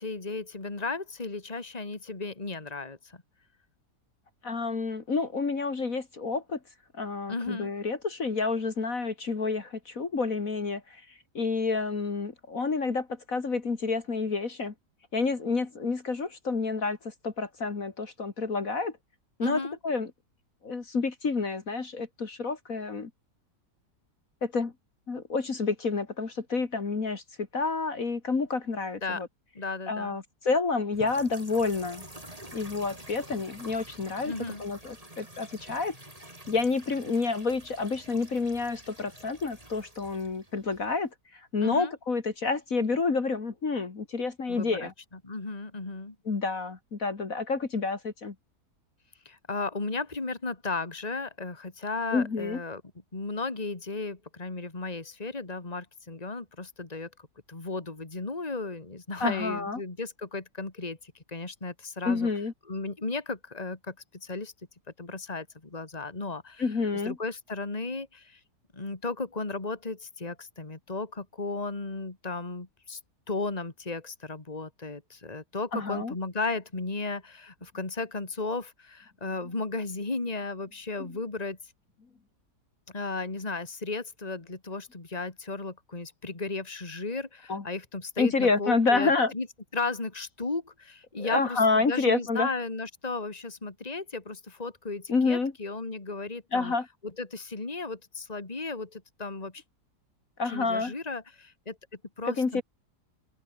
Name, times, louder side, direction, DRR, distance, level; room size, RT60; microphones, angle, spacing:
voice 1, 0.0-3.2 7.3-7.7 19.4-19.8 29.0-29.2 29.5-30.2 34.2-34.6 41.6-41.9 44.5-44.9 45.2-46.2 49.2-52.8 53.1-57.1 57.5-62.3 62.7-63.9 64.2-64.5 65.0-66.6 67.0-68.4 68.7-73.0 73.3-81.6 82.9-89.5 89.7-96.7 97.2-99.6 100.5-101.8 102.2-102.6, left 3 dB, 25° left, 2.7 m, -35 dB
voice 2, 4.4-6.6 6.9-11.0 11.3-14.7 15.1-18.9 19.4-20.1 20.6-23.1 24.4-24.7 25.1-29.3 29.9-32.0 32.5-34.3 34.6-35.9 36.5-44.9 46.3-48.3 52.1-52.6 59.2-59.8 62.0-62.5 66.6-67.2 75.7-76.1 87.5-87.6 88.2-89.3 91.2-92.5 95.1-95.5 96.5-96.9 100.4-100.9 102.2-102.6, left 4 dB, 55° left, 2.7 m, -29 dB
sound 1, 30.9-41.1, right 1 dB, 20° right, 6.6 m, -48 dB
open air
omnidirectional pair, 1.7 m